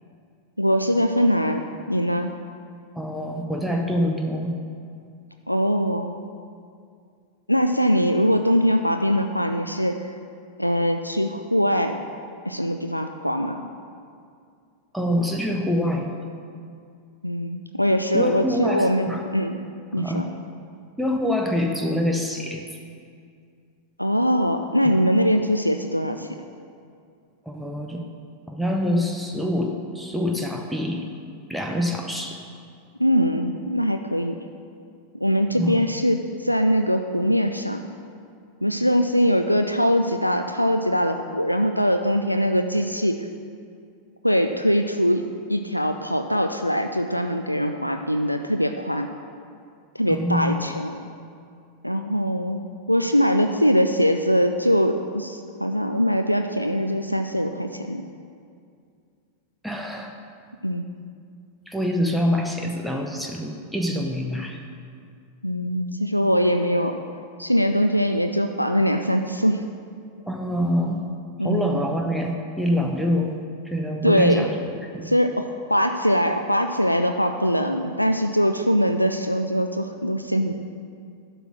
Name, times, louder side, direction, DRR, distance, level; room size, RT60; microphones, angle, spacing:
voice 1, 0.6-2.3 5.5-6.1 7.5-9.9 10.6-11.9 12.5-13.7 17.2-19.6 19.9-20.2 24.0-26.3 33.0-34.4 35.2-37.8 38.6-43.2 44.2-49.1 49.9-51.0 51.8-52.6 52.9-58.0 60.6-60.9 65.4-66.9 67.4-69.6 71.4-71.8 74.0-74.5 75.0-80.5, equal, 90° left, 5 dB, 0.3 m, -22 dB
voice 2, 3.0-4.5 14.9-16.1 18.1-19.2 20.0-20.3 21.0-22.6 27.5-28.0 28.5-31.1 31.5-32.4 35.6-35.8 50.1-50.7 59.6-60.1 61.7-64.6 70.2-71.0 71.4-73.4 73.6-75.1, equal, ahead, 1 dB, 0.7 m, -25 dB
11.5 x 3.9 x 6.1 m, 2.3 s
figure-of-eight pair, 90°, 0 cm